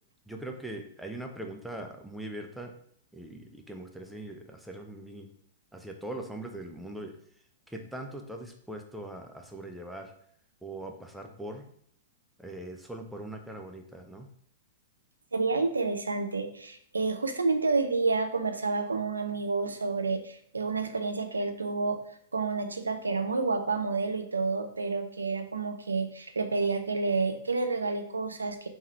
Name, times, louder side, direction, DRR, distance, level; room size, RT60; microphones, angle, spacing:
voice 1, 0.3-2.7 3.1-5.3 5.7-7.1 7.7-10.1 10.6-11.7 12.4-14.3, right 1 dB, ahead, 3 dB, 0.6 m, -41 dB
voice 2, 15.3-22.0 22.3-28.7, right 4 dB, 80° right, 7 dB, 0.5 m, -29 dB
3.7 x 3.1 x 4.2 m, 0.64 s
figure-of-eight pair, 105°, 0 cm